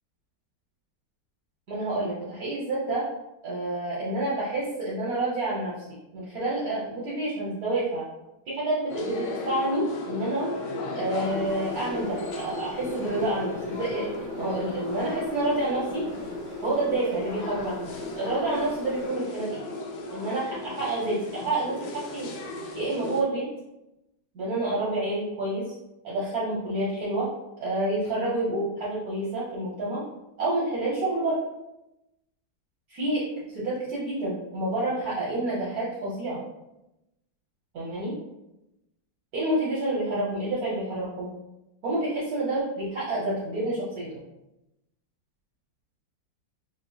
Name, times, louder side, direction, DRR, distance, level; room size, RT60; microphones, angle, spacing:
voice 1, 1.7-3.0 3.4-5.7 6.1-8.0 8.5-10.5 10.9-16.1 16.6-19.6 20.1-22.3 22.7-23.5 24.3-25.7 26.0-27.3 27.6-30.0 30.4-31.4 32.9-33.2 33.5-36.4 37.7-38.1 39.3-41.3 41.8-44.1, right 2 dB, 60° right, -7 dB, 1.2 m, -28 dB
sound 1, 8.9-23.2, left 2 dB, 70° left, 1.1 m, -35 dB
sound 2, 11.2-19.1, right 3 dB, 75° right, 1.2 m, -45 dB
5.3 x 2.9 x 2.3 m, 0.91 s
omnidirectional pair, 2.1 m